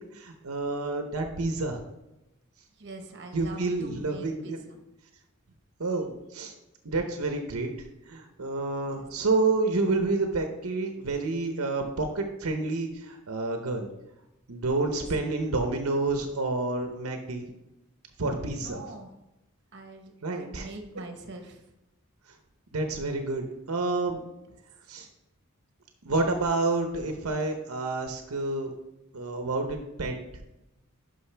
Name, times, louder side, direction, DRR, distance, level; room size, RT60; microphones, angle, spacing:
voice 1, 0.1-1.8 3.3-4.6 5.8-6.5 6.8-7.7 8.1-13.9 14.5-17.5 18.2-18.8 20.2-20.7 22.7-24.2 24.9-25.1 26.0-28.7 29.1-30.2, right 3 dB, 80° right, 4 dB, 0.8 m, -29 dB
voice 2, 2.8-4.8 9.0-9.1 14.9-15.1 18.5-19.1 19.7-21.6, right 2 dB, 55° right, 5 dB, 1.1 m, -44 dB
11.5 x 5.4 x 3.3 m, 0.93 s
head